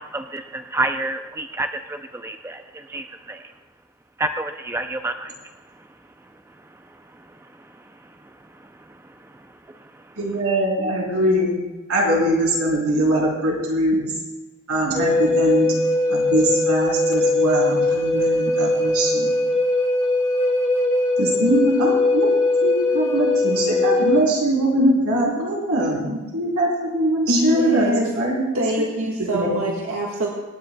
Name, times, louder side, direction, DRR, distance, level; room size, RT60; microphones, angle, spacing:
voice 1, 0.1-2.6 2.9-3.4 4.2-5.3, right 2 dB, 10° right, 6 dB, 0.4 m, -28 dB
voice 2, 10.2-11.6 11.9-14.1 14.7-15.7 16.1-19.3 21.2-22.3 22.6-28.5 29.3-29.6, right 1 dB, 90° right, -3 dB, 3.6 m, -22 dB
Wind instrument woodwind instrument, 14.9-24.2, left 2 dB, 25° left, 1.8 m, -20 dB
voice 3, 27.3-28.1 28.5-30.3, equal, 75° right, -3 dB, 1.4 m, -24 dB
25.5 x 10.0 x 2.2 m, 1.2 s
head